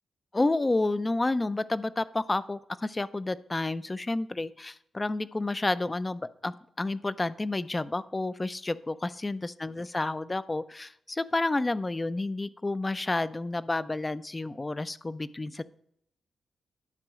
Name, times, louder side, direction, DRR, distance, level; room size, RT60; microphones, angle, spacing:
voice 1, 0.3-15.6, left 2 dB, 20° left, 16 dB, 0.4 m, -30 dB
10.5 x 4.6 x 6.2 m, 0.72 s
wide cardioid pair, 110°, 0 cm